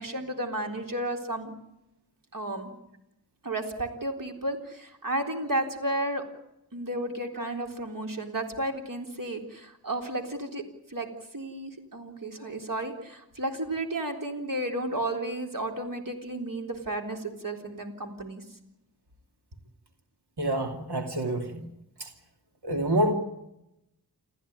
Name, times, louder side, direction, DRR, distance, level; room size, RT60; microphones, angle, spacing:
voice 1, 0.0-1.5 2.3-2.7 3.4-6.2 6.7-10.6 10.9-11.1 11.3-18.4, right 1 dB, 55° right, 3 dB, 4.0 m, -33 dB
voice 2, 20.4-21.6 22.6-23.1, right 1 dB, 85° right, 3 dB, 2.8 m, -27 dB
28.5 x 14.5 x 9.6 m, 0.87 s
wide cardioid pair, 80°, 38 cm